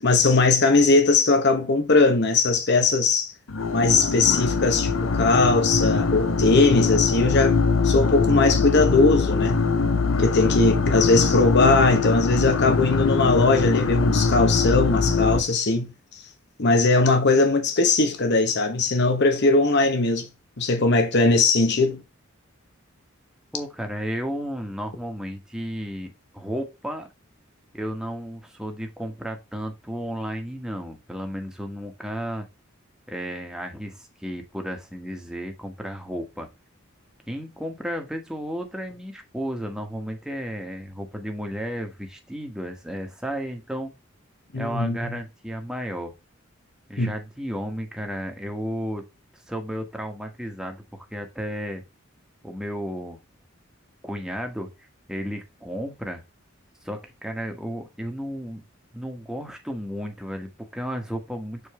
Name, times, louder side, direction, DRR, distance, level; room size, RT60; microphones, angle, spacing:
voice 1, 0.0-3.3 3.7-7.6 7.8-9.6 10.2-15.9 16.6-20.3 20.6-22.0 44.5-45.1 47.0-47.1, left 3 dB, 60° left, 1.1 m, -20 dB
sound 1, 3.5-15.4, left 4 dB, 80° left, 0.8 m, -22 dB
voice 2, 23.5-27.1 27.7-32.5 33.1-36.5 37.3-43.9 44.5-46.1 46.9-49.0 49.5-51.8 52.4-53.2 54.0-54.7 55.1-56.2 56.8-58.7 58.9-61.7, equal, 5° right, 1.4 m, -33 dB
6.8 x 4.4 x 3.2 m
head